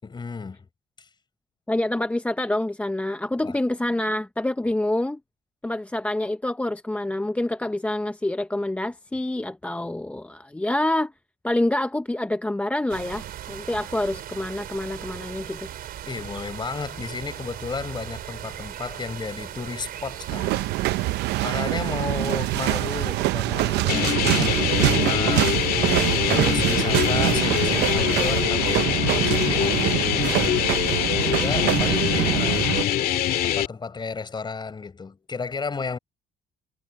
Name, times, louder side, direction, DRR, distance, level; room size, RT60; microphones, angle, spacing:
voice 1, 0.0-0.7 1.0-1.1 3.4-3.6 16.0-20.6 21.4-25.6 26.0-30.3 31.1-32.8 33.4-36.0, left 4 dB, 25° left, 4.8 m, -33 dB
voice 2, 1.7-5.2 5.6-11.1 11.4-15.7, left 1 dB, 10° left, 0.7 m, -27 dB
sound 1, 12.9-23.3, right 11 dB, 65° right, 4.1 m, -38 dB
sound 2, 20.3-32.8, right 18 dB, 85° right, 0.6 m, -24 dB
sound 3, 23.9-33.7, left 11 dB, 65° left, 1.9 m, -24 dB
cardioid pair, 110°, 17 cm